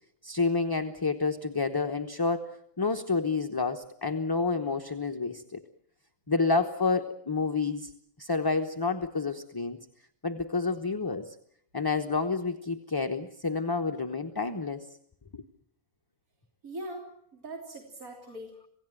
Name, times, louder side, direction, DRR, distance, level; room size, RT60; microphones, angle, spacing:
voice 1, 0.2-5.6 6.3-7.9 8.2-9.8 10.2-11.4 11.7-14.9 15.3-15.4, left 4 dB, 20° left, 6 dB, 0.9 m, -29 dB
voice 2, 16.6-17.1 17.3-18.7, right 1 dB, 75° right, 0 dB, 3.8 m, -41 dB
27.5 x 17.5 x 9.0 m, 0.68 s
omnidirectional pair, 1.5 m